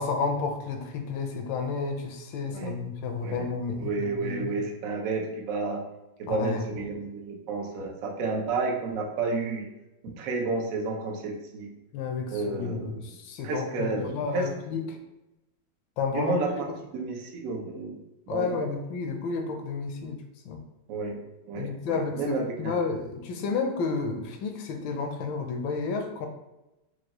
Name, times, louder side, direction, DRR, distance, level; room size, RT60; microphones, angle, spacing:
voice 1, 0.0-4.6 6.3-6.9 11.9-15.0 16.0-16.3 18.3-20.2 20.4-20.6 21.5-26.3, left 4 dB, 75° left, 5 dB, 1.3 m, -31 dB
voice 2, 2.5-2.8 3.2-3.5 3.8-5.8 6.2-9.7 10.0-11.7 12.3-12.9 13.4-14.5 14.9-15.0 16.1-16.7 16.9-18.0 18.3-18.6 20.9-21.2 21.5-22.8, right 3 dB, 85° right, 0 dB, 0.7 m, -31 dB
4.7 x 2.3 x 2.9 m, 0.96 s
omnidirectional pair, 2.2 m